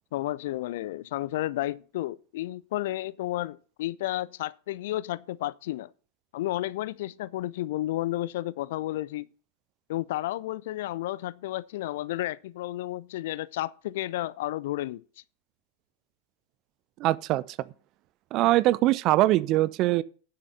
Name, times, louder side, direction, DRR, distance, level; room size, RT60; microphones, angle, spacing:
voice 1, 0.1-5.9 6.3-9.3 9.9-15.0, left 15 dB, 55° left, 0.4 m, -32 dB
voice 2, 17.0-17.4 18.3-20.0, right 16 dB, 40° right, 0.5 m, -22 dB
9.4 x 7.7 x 5.5 m
figure-of-eight pair, 90°, 0 cm